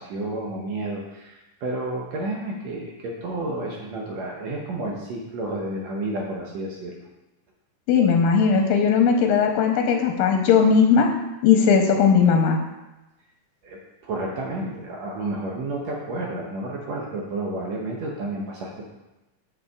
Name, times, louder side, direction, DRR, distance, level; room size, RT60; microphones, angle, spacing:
voice 1, 0.0-7.0 13.6-18.9, right 2 dB, 70° right, -1 dB, 1.7 m, -31 dB
voice 2, 7.9-11.1 11.4-12.6, left 6 dB, 90° left, 3 dB, 2.4 m, -18 dB
7.0 x 6.7 x 3.5 m, 1.0 s
omnidirectional pair, 4.0 m